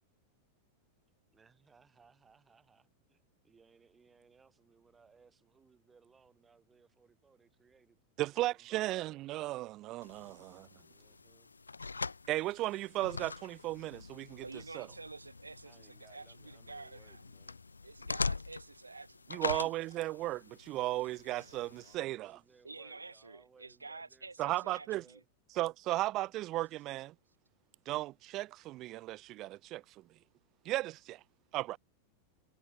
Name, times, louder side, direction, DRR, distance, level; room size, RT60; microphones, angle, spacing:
voice 1, 1.3-9.2 10.8-11.5 15.6-17.6 21.3-25.3, right 5 dB, 15° right, 5.0 m, -65 dB
voice 2, 8.2-10.7 12.3-14.4 14.7-14.9 19.3-22.3 24.4-25.0 25.6-27.1 27.9-29.8 30.7-31.2 31.5-31.8, right 17 dB, 35° right, 0.3 m, -35 dB
sound 1, 10.0-22.0, left 4 dB, 80° left, 0.7 m, -43 dB
voice 3, 14.4-17.2 17.8-19.4 22.6-25.2, right 3 dB, 80° right, 1.0 m, -49 dB
figure-of-eight pair, 90°, 0 cm